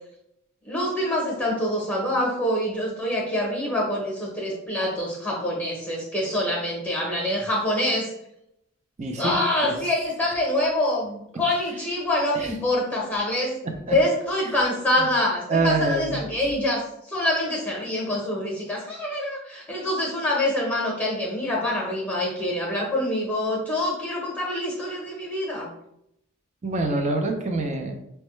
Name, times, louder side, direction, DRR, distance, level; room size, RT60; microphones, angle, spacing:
voice 1, 0.6-8.1 9.2-13.6 13.9-25.7, left 1 dB, 10° left, -3 dB, 0.9 m, -25 dB
voice 2, 9.0-9.4 9.6-9.7 12.3-12.5 13.9-14.0 14.4-14.6 15.0-15.1 15.5-16.2 26.6-28.0, right 2 dB, 35° right, 4 dB, 0.5 m, -25 dB
5.2 x 2.2 x 3.1 m, 0.80 s
head